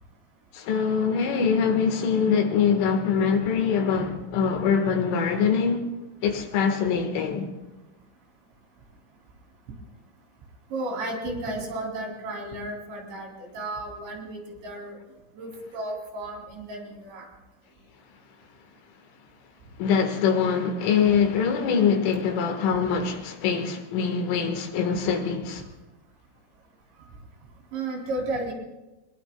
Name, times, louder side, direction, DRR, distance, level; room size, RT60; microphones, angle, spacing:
voice 1, 0.5-5.9 6.2-7.5 19.8-25.6, left 6 dB, 75° left, 4.0 m, -23 dB
voice 2, 10.7-15.0 15.4-17.3 27.7-28.5, right 2 dB, 65° right, 5.4 m, -33 dB
23.0 x 21.5 x 2.3 m
omnidirectional pair, 5.8 m